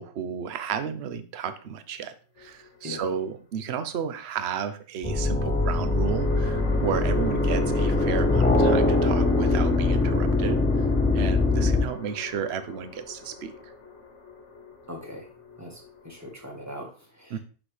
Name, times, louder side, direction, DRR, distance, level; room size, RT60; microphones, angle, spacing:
voice 1, 0.0-10.6 11.1-13.5 17.3-17.4, right 7 dB, 60° right, 10 dB, 0.9 m, -33 dB
sound 1, 2.4-3.2 5.5-16.9, left 5 dB, 65° left, 1.5 m, -38 dB
sound 2, 5.0-11.8, left 2 dB, 10° left, 0.3 m, -22 dB
voice 2, 14.9-15.3 15.6-17.4, equal, 15° right, 1 dB, 1.6 m, -40 dB
6.0 x 6.0 x 3.3 m, 0.38 s
omnidirectional pair, 1.3 m